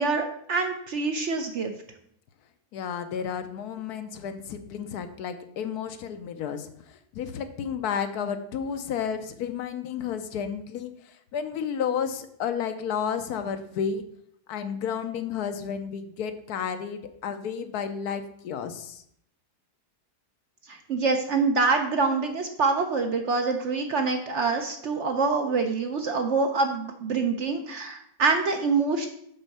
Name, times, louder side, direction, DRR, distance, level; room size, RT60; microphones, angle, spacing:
voice 1, 0.0-1.7 20.7-29.1, right 4 dB, 60° right, 5 dB, 0.8 m, -25 dB
voice 2, 2.7-14.0 14.5-19.0, left 7 dB, 75° left, 9 dB, 1.1 m, -32 dB
6.2 x 4.4 x 6.5 m, 0.71 s
omnidirectional pair, 1.7 m